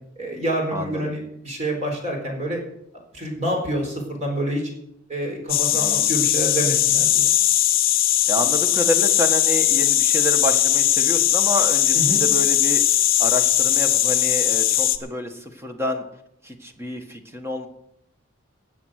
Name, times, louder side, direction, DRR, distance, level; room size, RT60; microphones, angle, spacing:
voice 1, 0.2-2.6 3.1-4.6 5.1-7.3 11.9-12.2, right 1 dB, 35° right, 1 dB, 4.1 m, -27 dB
voice 2, 0.7-1.1 5.7-6.1 8.3-16.0 16.4-17.7, equal, 10° right, 5 dB, 1.5 m, -28 dB
sound 1, 5.5-15.0, left 12 dB, 45° left, 0.9 m, -19 dB
18.0 x 7.3 x 6.5 m, 0.77 s
head